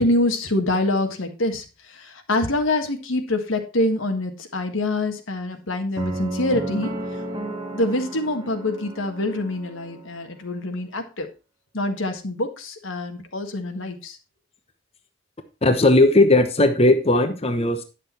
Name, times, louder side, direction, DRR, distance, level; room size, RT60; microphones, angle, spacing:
voice 1, 0.0-7.2 7.7-11.3 11.7-14.2, left 2 dB, 90° left, 5 dB, 1.6 m, -25 dB
sound 1, 6.0-10.1, right 1 dB, 20° right, 1.5 m, -32 dB
voice 2, 15.6-17.8, left 2 dB, 30° left, 6 dB, 0.9 m, -17 dB
10.0 x 6.8 x 4.2 m, 0.30 s
head